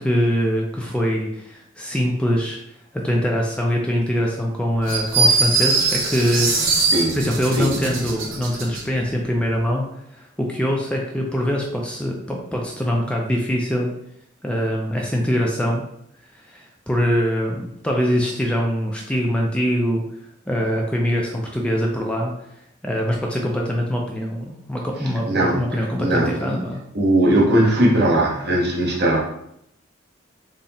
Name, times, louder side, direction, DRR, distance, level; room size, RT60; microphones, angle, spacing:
voice 1, 0.0-13.9 14.4-15.9 16.3-20.0 20.5-22.3 22.8-26.8, equal, 5° left, -1 dB, 0.3 m, -23 dB
sound 1, 4.9-8.8, right 3 dB, 85° right, 0.7 m, -21 dB
voice 2, 7.6-7.9 25.3-25.6 26.0-26.6 26.9-29.2, right 1 dB, 55° right, -2 dB, 0.9 m, -19 dB
3.8 x 2.0 x 4.0 m, 0.75 s
head